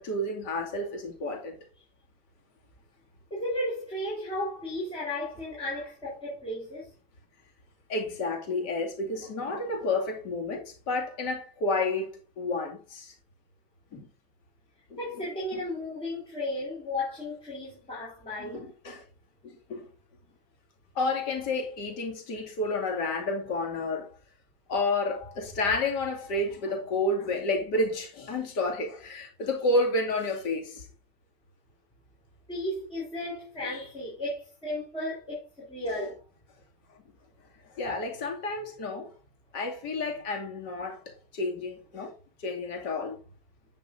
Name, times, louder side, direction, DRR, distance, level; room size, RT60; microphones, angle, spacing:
voice 1, 0.0-1.6 7.9-13.1 13.9-14.1 14.9-15.0 15.5-15.6 18.4-19.0 19.4-19.9 20.9-24.1 24.7-30.9 35.9-36.0 37.7-39.1 39.5-42.1 42.4-43.2, left 2 dB, 55° left, 2.4 m, -30 dB
voice 2, 3.3-6.9 15.0-18.6 32.5-36.2, left 1 dB, 15° left, 4.3 m, -34 dB
10.5 x 6.8 x 2.6 m
cardioid pair, 150°, 32 cm